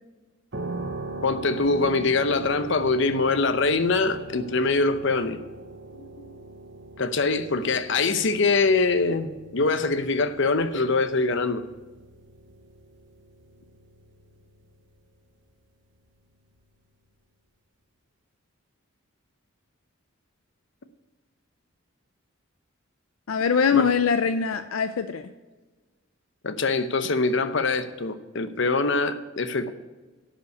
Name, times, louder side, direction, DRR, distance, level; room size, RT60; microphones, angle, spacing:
sound 1, 0.5-15.2, right 2 dB, 60° right, 1.0 m, -41 dB
voice 1, 1.2-5.4 5.9-6.1 7.0-11.6 23.7-23.9 26.4-29.7, left 3 dB, 60° left, 0.8 m, -24 dB
voice 2, 23.3-25.3, left 6 dB, 85° left, 0.5 m, -23 dB
11.5 x 5.6 x 8.1 m
head